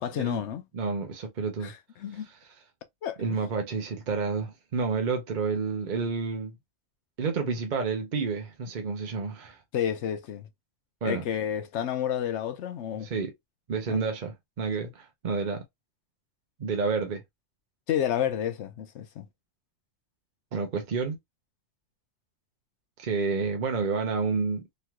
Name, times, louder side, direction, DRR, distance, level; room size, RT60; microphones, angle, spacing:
voice 1, 0.0-0.6 1.6-2.3 3.0-3.2 9.7-10.5 11.0-13.1 13.9-14.0 17.9-19.3, left 9 dB, 70° left, 0.9 m, -30 dB
voice 2, 0.7-1.7 2.3-2.4 3.2-6.5 7.2-9.6 11.0-11.2 13.0-13.3 13.7-15.6 16.6-17.2 20.5-21.2 23.0-24.7, right 4 dB, 50° right, 0.7 m, -29 dB
3.1 x 2.9 x 2.2 m
omnidirectional pair, 1.3 m